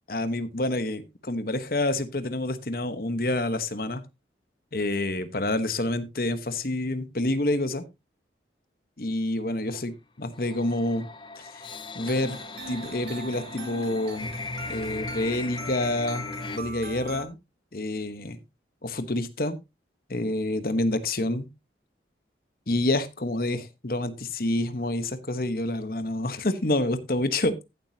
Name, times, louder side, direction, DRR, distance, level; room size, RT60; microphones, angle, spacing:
voice 1, 0.1-4.0 4.7-7.8 9.0-11.1 11.4-12.4 12.7-14.3 14.7-17.4 17.7-18.4 18.8-19.6 20.1-21.5 22.7-27.6, left 1 dB, 50° left, 11 dB, 1.1 m, -28 dB
sound 1, 10.3-16.6, left 3 dB, 25° left, 0.8 m, -38 dB
sound 2, 12.0-17.3, right 2 dB, 65° right, 2.1 m, -41 dB
15.0 x 7.5 x 2.8 m, 0.23 s
head